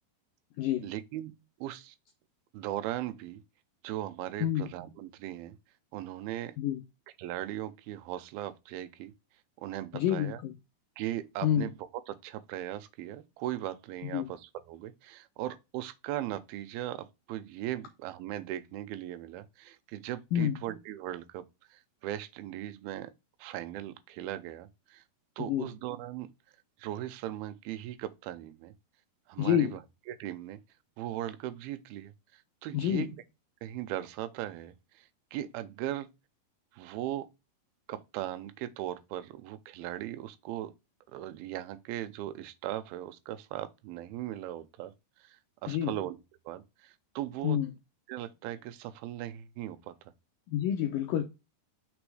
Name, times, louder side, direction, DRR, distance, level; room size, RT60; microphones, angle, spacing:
voice 1, 0.8-2.0 2.5-3.4 3.8-5.6 5.9-6.6 7.2-9.1 9.6-10.4 11.0-11.7 12.1-23.1 23.4-25.0 25.4-26.3 26.8-28.7 29.3-29.8 30.1-30.6 31.0-33.1 33.6-36.1 36.7-37.3 37.9-40.7 41.1-44.9 45.2-46.2 46.5-47.6 48.1-50.1, right 13 dB, 80° right, 2.2 m, -38 dB
voice 2, 9.9-10.5 11.4-11.7 14.1-14.3 20.3-20.6 25.5-25.7 29.4-29.7 32.7-33.1 45.7-45.9 47.4-47.7 50.5-51.2, left 10 dB, 80° left, 1.9 m, -28 dB
6.1 x 3.4 x 4.8 m
omnidirectional pair, 4.8 m